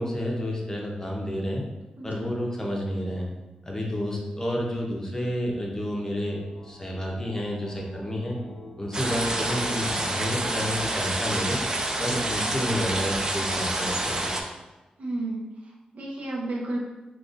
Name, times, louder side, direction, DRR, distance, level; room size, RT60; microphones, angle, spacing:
voice 1, 0.0-1.6 2.0-3.3 3.6-8.4 8.8-11.6 12.0-14.3, equal, 20° left, -2 dB, 0.6 m, -30 dB
sound 1, 6.1-13.7, left 1 dB, 65° left, 0.7 m, -48 dB
sound 2, 8.9-14.4, right 1 dB, 25° right, 0.4 m, -28 dB
voice 2, 15.0-16.8, right 2 dB, 70° right, -2 dB, 0.7 m, -32 dB
3.9 x 2.9 x 2.5 m, 1.1 s
wide cardioid pair, 140°, 3 cm